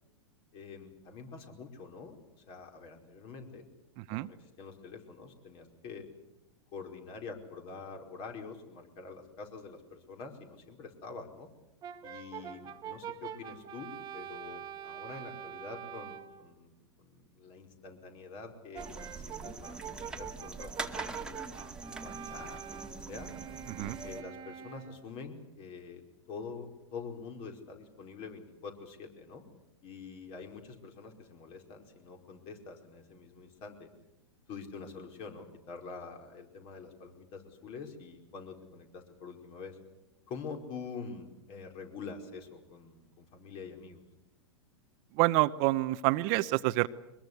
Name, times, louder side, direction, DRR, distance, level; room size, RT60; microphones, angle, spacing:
voice 1, 0.5-2.1 2.5-3.6 4.1-6.1 6.7-11.5 12.0-16.7 17.0-18.9 19.2-21.5 22.0-23.3 23.8-26.0 26.3-29.4 29.8-33.9 34.5-39.8 40.3-44.0, left 5 dB, 40° left, 4 dB, 4.9 m, -46 dB
Brass instrument, 11.8-16.4 18.7-25.1, right 9 dB, 30° right, 1.7 m, -45 dB
sound 1, 18.8-24.2, right 3 dB, 5° right, 1.9 m, -43 dB
voice 2, 45.2-46.9, right 19 dB, 45° right, 13 dB, 0.8 m, -27 dB
23.5 x 21.5 x 8.3 m, 0.91 s
hypercardioid pair, 115°, 14 cm